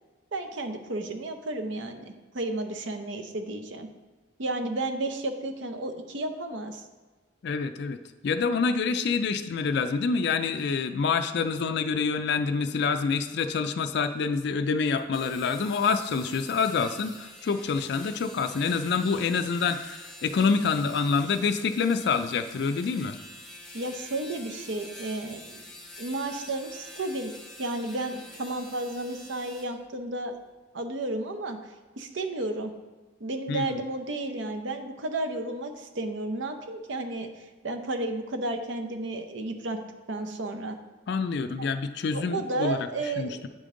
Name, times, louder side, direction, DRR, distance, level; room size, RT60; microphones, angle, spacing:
voice 1, 0.3-3.9 4.4-6.8 23.7-25.6 26.0-27.3 27.6-30.4 30.7-31.6 32.0-32.7 33.2-37.3 37.6-39.8 40.1-40.8 41.6-41.7 42.1-43.5, right 2 dB, 70° right, 6 dB, 0.7 m, -32 dB
voice 2, 7.4-8.0 8.2-23.2 33.5-33.8 41.1-42.8 43.0-43.5, left 5 dB, 60° left, 8 dB, 0.3 m, -27 dB
sound 1, 15.0-29.7, left 1 dB, ahead, 1.0 m, -46 dB
8.5 x 5.1 x 3.7 m, 1.3 s
head